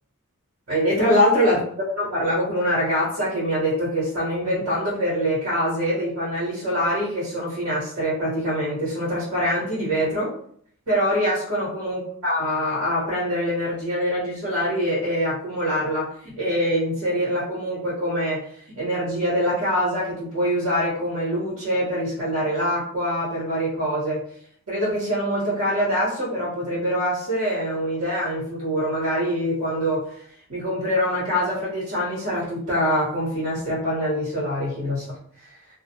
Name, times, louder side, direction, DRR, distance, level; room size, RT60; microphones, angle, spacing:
voice 1, 0.7-10.3 10.9-16.1 16.4-18.4 18.7-24.2 24.7-30.0 30.5-35.1 35.4-35.5, equal, 75° right, -8 dB, 1.1 m, -24 dB
2.3 x 2.2 x 2.8 m, 0.64 s
head